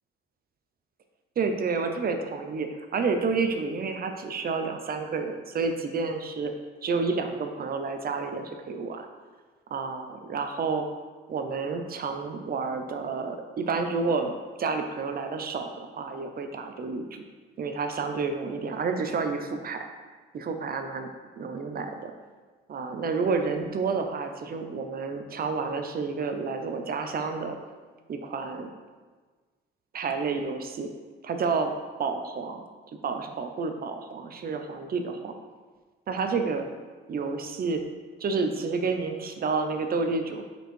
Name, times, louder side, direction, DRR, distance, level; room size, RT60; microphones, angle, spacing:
voice 1, 1.4-6.5 6.8-9.1 9.7-10.9 11.3-14.3 14.6-17.2 17.6-19.8 20.3-21.1 21.4-22.1 22.7-27.6 28.1-28.7 29.9-30.9 31.2-31.7 32.0-32.6 33.0-35.3 36.1-36.7 37.1-37.8 38.2-40.4, right 4 dB, 50° right, 6 dB, 0.7 m, -30 dB
5.4 x 4.6 x 4.5 m, 1.4 s
cardioid pair, 90°, 20 cm